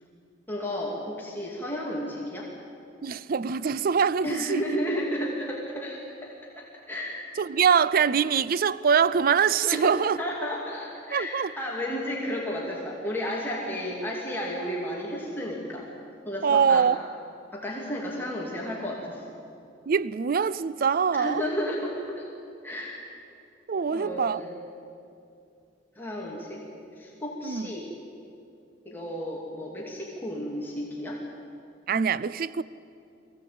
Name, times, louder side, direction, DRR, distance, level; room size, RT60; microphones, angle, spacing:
voice 1, 0.5-2.5 4.2-7.3 9.6-15.9 16.2-16.9 17.5-19.2 21.1-22.3 22.6-23.1 23.9-24.5 26.0-26.6 27.0-27.9 28.8-31.2, equal, 10° left, 2.6 m, -33 dB
voice 2, 3.0-4.6 7.4-10.2 11.1-11.5 16.4-17.0 19.9-21.4 23.7-24.4 27.4-27.7 31.9-32.6, right 6 dB, 50° right, 0.4 m, -23 dB
23.0 x 16.0 x 8.6 m
head